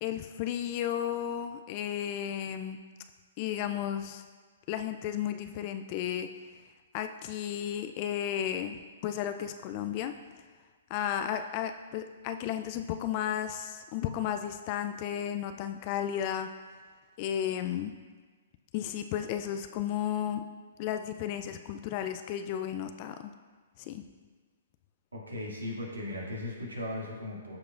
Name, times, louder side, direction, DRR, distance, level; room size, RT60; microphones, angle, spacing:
voice 1, 0.0-2.8 3.4-4.2 4.7-6.3 6.9-8.8 9.0-10.1 10.9-16.5 17.2-17.9 18.7-20.4 20.8-23.3 23.8-24.0, left 10 dB, 40° left, 8 dB, 0.4 m, -33 dB
voice 2, 25.1-27.6, left 1 dB, 85° right, -3 dB, 2.1 m, -37 dB
14.5 x 4.8 x 2.5 m, 1.4 s
figure-of-eight pair, 125°, 0 cm